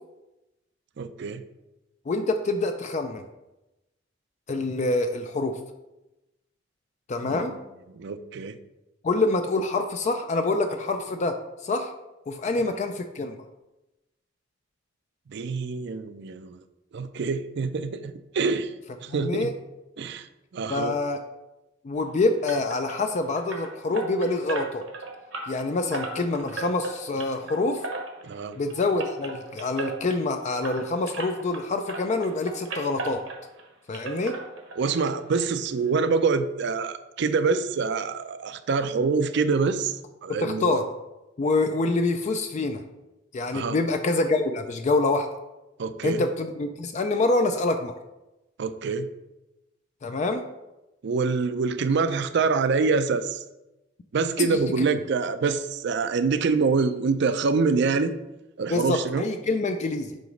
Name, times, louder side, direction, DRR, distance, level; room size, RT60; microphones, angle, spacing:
voice 1, 1.0-1.4 7.2-7.4 7.9-8.6 12.6-12.7 15.3-16.6 16.9-18.7 19.0-19.5 20.0-20.3 20.5-21.0 28.2-28.6 34.8-40.8 43.5-43.8 45.8-46.2 48.6-49.1 51.0-53.4 54.1-58.1 58.6-59.2, right 4 dB, 65° right, 12 dB, 0.4 m, -25 dB
voice 2, 2.1-3.2 4.5-5.6 7.1-7.6 9.0-11.3 11.6-11.9 12.3-13.4 19.1-19.5 20.7-21.2 21.8-24.8 25.5-27.8 28.6-33.2 33.9-34.4 40.3-40.8 41.4-42.8 43.3-45.3 46.0-47.9 50.0-50.4 54.4-54.9 58.7-60.2, left 2 dB, 40° left, 6 dB, 0.4 m, -26 dB
sound 1, 22.5-31.6 31.9-33.7 33.9-35.0 35.3-35.4 35.9-36.0 36.3-36.4, right 3 dB, 80° right, 1.2 m, -36 dB
7.7 x 3.0 x 5.1 m, 0.99 s
head